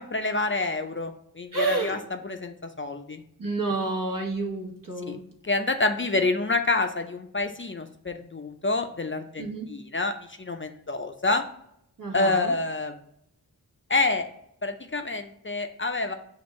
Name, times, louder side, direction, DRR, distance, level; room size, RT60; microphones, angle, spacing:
voice 1, 0.0-2.0 2.2-3.2 5.1-5.2 5.4-9.4 9.7-10.1 10.4-11.4 12.1-12.9 13.9-14.3 14.6-16.1, left 3 dB, 35° left, 6 dB, 0.4 m, -27 dB
voice 2, 1.5-2.0 3.4-5.2 9.4-9.7 12.0-12.5, right 3 dB, 60° right, 0 dB, 1.2 m, -29 dB
6.1 x 2.4 x 3.0 m, 0.73 s
wide cardioid pair, 50°, 36 cm